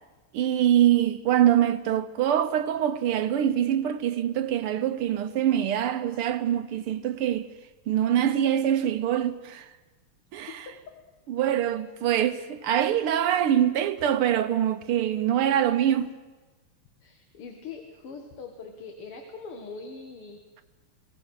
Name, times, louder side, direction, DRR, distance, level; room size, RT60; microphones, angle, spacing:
voice 1, 0.3-7.5 7.9-9.7 10.3-10.5 11.3-16.1, right 10 dB, 80° right, 1.8 m, -24 dB
voice 2, 17.0-20.4, left 4 dB, 80° left, 2.6 m, -42 dB
24.0 x 18.0 x 6.5 m
omnidirectional pair, 2.4 m